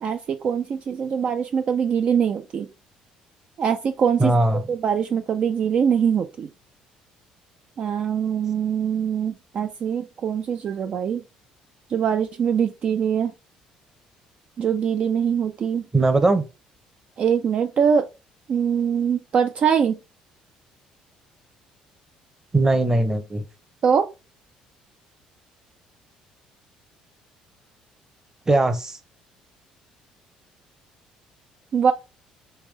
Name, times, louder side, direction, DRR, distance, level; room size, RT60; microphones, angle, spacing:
voice 1, 0.0-2.7 3.6-4.3 4.7-6.5 7.8-11.2 11.9-13.3 14.6-15.8 17.2-18.1 18.5-20.0 23.8-24.1 31.7-31.9, right 7 dB, 50° right, 0.3 m, -23 dB
voice 2, 4.2-4.6 15.9-16.4 22.5-23.4 28.5-29.0, right 2 dB, 20° right, 0.8 m, -19 dB
3.5 x 3.1 x 3.2 m
supercardioid pair, 75°, 3 cm